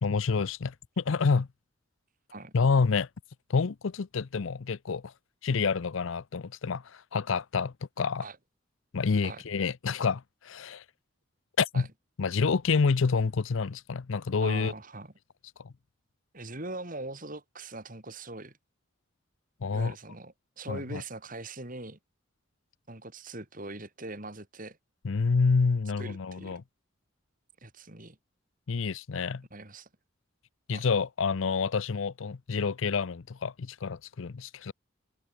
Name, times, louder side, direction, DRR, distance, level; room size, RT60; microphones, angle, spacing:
voice 1, 0.0-1.5 2.5-3.1 3.5-5.1 5.4-8.3 8.9-10.8 11.6-11.9 12.2-14.7 15.6-15.7 19.6-19.9 20.7-21.0 25.0-26.6 28.7-29.4 30.7-34.7, left 5 dB, 70° left, 0.5 m, -28 dB
voice 2, 14.4-15.1 16.3-18.5 19.7-22.0 22.9-24.8 26.0-26.6 27.6-28.2 29.5-29.9 30.7-30.9, right 2 dB, 40° right, 3.5 m, -41 dB
head